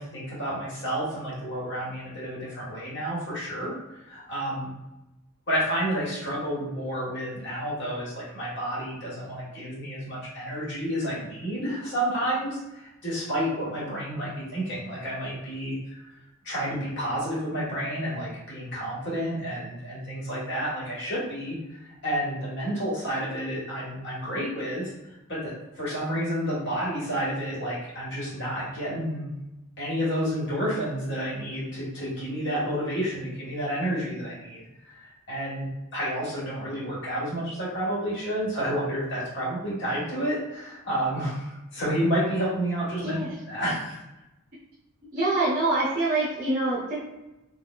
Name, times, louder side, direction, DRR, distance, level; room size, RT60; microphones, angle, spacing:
voice 1, 0.0-4.7 5.5-15.8 16.4-21.6 22.0-29.3 29.8-34.6 35.0-43.2 43.5-44.0, equal, 55° left, -7 dB, 1.3 m, -30 dB
voice 2, 43.0-43.3 45.1-47.0, right 2 dB, 40° right, -7 dB, 0.7 m, -25 dB
4.0 x 2.3 x 2.3 m, 0.97 s
head